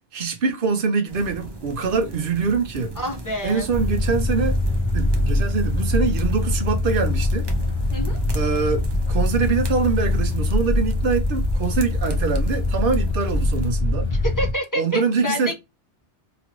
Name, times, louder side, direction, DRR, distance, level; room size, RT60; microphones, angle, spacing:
voice 1, 0.1-3.0 3.4-4.6 4.9-7.4 8.3-14.1 14.8-15.5, right 5 dB, 55° right, 0.8 m, -24 dB
sound 1, 1.1-13.7, right 1 dB, 35° right, 0.4 m, -37 dB
voice 2, 3.0-3.7 7.9-8.2 14.1-15.5, equal, 20° left, 0.8 m, -28 dB
sound 2, 3.7-14.5, left 2 dB, 50° left, 0.3 m, -23 dB
3.0 x 2.5 x 2.9 m
omnidirectional pair, 1.2 m